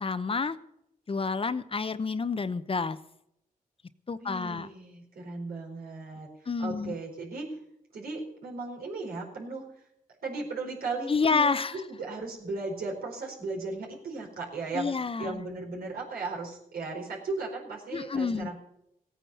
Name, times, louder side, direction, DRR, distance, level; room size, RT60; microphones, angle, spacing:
voice 1, 0.0-0.6 1.1-3.0 4.1-4.7 6.5-6.9 11.1-11.7 14.7-15.4 17.9-18.5, left 4 dB, 40° left, 13 dB, 0.8 m, -29 dB
voice 2, 4.2-6.3 6.6-7.5 7.9-9.6 10.2-14.9 15.2-18.6, right 3 dB, 85° right, -1 dB, 4.5 m, -36 dB
16.5 x 9.4 x 7.0 m, 0.79 s
cardioid pair, 75°, 15 cm